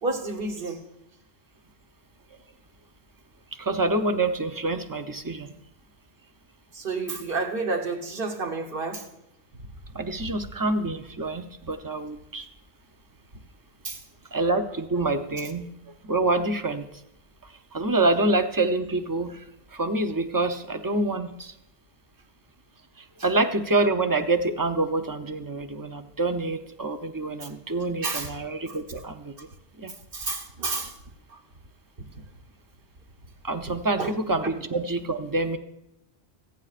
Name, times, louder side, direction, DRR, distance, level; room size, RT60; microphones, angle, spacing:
voice 1, 0.0-0.8 6.7-9.0 13.8-14.0 28.0-28.3 28.7-28.8 30.1-30.9 34.0-34.1, right 3 dB, 55° right, 3 dB, 1.3 m, -30 dB
voice 2, 3.6-5.6 9.9-12.5 14.3-15.7 16.0-16.9 17.7-19.4 19.7-21.5 23.0-29.3 29.8-29.9 33.4-35.6, right 2 dB, 25° right, 8 dB, 0.5 m, -26 dB
25.0 x 9.2 x 2.5 m, 0.86 s
omnidirectional pair, 1.2 m